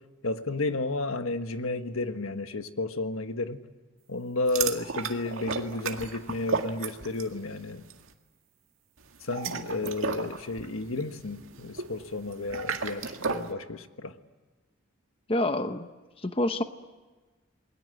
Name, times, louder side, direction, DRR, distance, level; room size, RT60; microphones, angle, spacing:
voice 1, 0.2-3.6 4.1-7.8 9.2-14.2, left 2 dB, 85° left, 8 dB, 1.5 m, -32 dB
sound 1, 4.5-7.4 7.7-8.0 9.1-13.5, right 5 dB, 75° right, 1.9 m, -34 dB
voice 2, 15.3-15.9 16.2-16.6, left 1 dB, 25° left, 9 dB, 0.9 m, -27 dB
28.5 x 21.5 x 7.8 m, 1.3 s
head